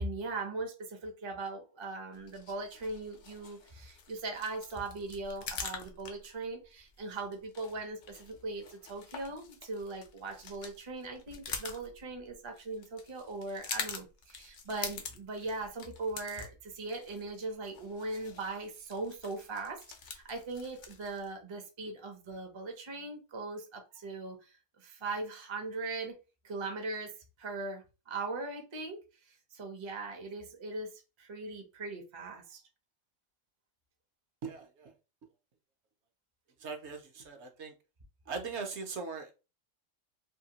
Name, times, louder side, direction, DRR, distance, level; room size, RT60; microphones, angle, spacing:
voice 1, 0.0-26.1 26.4-27.1 27.4-29.0 29.2-30.9 31.2-32.6, right 3 dB, 35° right, 0.4 m, -40 dB
sound 1, 2.1-21.3, left 5 dB, 60° left, 0.5 m, -46 dB
voice 2, 34.4-34.9 36.6-37.7 38.3-39.3, right 4 dB, 65° right, 0.8 m, -40 dB
2.7 x 2.5 x 2.8 m
omnidirectional pair, 1.4 m